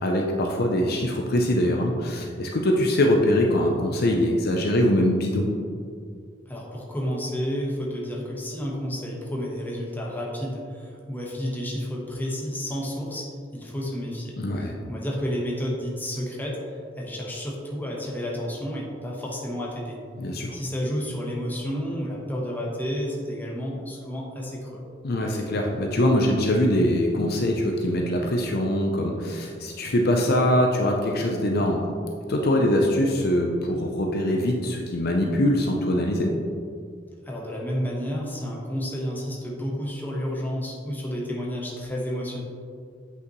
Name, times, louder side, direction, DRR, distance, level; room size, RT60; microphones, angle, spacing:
voice 1, 0.0-5.5 14.4-14.7 20.2-20.6 25.0-31.8 32.3-36.3, left 1 dB, 55° left, 1 dB, 0.6 m, -23 dB
voice 2, 6.5-13.3 13.5-16.6 17.0-20.0 20.5-24.8 37.2-42.4, equal, 10° left, -3 dB, 1.1 m, -31 dB
8.1 x 5.7 x 3.1 m, 2.2 s
head